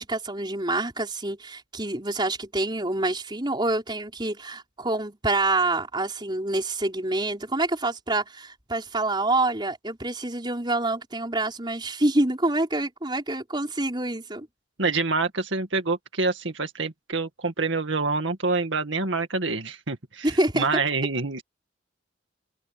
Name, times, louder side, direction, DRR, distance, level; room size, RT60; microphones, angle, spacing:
voice 1, 0.0-14.5 20.2-20.7, right 2 dB, 25° right, 4.7 m, -27 dB
voice 2, 14.8-21.4, right 3 dB, 75° right, 2.1 m, -27 dB
head